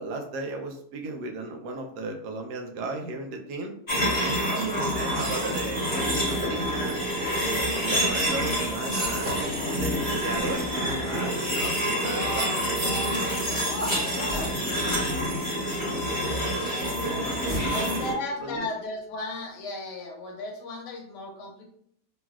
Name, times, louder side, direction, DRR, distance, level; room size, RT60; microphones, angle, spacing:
voice 1, 0.0-3.7 4.2-7.0 7.4-12.5 16.2-18.7, right 3 dB, 80° right, 3 dB, 1.1 m, -35 dB
sound 1, 3.9-18.1, equal, 15° left, 0.7 m, -27 dB
sound 2, 5.6-11.0, right 1 dB, 50° right, 0.5 m, -40 dB
voice 2, 12.0-15.4 16.5-17.0 17.7-21.7, left 1 dB, 85° left, 2 dB, 1.3 m, -36 dB
sound 3, 13.3-15.7 17.1-18.9, equal, 60° left, 0.4 m, -39 dB
3.1 x 2.6 x 2.3 m, 0.64 s
omnidirectional pair, 1.8 m